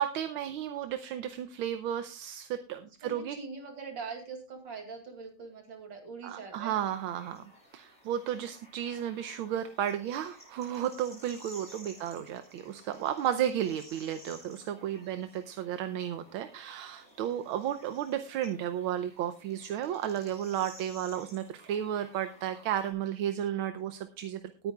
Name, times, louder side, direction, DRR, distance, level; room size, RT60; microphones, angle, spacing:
voice 1, 0.0-3.4 6.2-7.4 7.7-24.7, right 10 dB, 75° right, 9 dB, 1.5 m, -33 dB
voice 2, 3.0-6.8 8.5-8.6 20.2-20.5, right 4 dB, 60° right, 3 dB, 3.1 m, -43 dB
sound 1, 6.8-22.9, equal, 5° left, 7.6 m, -55 dB
19.0 x 9.4 x 2.3 m, 0.33 s
omnidirectional pair, 2.3 m